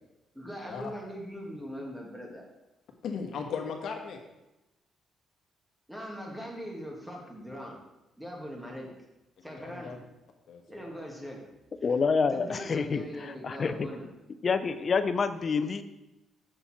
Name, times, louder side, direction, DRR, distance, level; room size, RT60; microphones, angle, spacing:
voice 1, 0.3-2.4 5.9-7.8 8.2-8.9 9.4-9.9 10.7-11.4 12.3-14.1, equal, 5° right, -2 dB, 2.2 m, -41 dB
voice 2, 3.0-4.2 9.5-10.0 10.5-11.0, left 6 dB, 70° left, 3 dB, 1.4 m, -37 dB
voice 3, 11.8-13.9 14.4-15.8, left 5 dB, 45° left, 11 dB, 0.6 m, -28 dB
7.2 x 6.8 x 4.4 m, 0.99 s
cardioid pair, 90°, 0 cm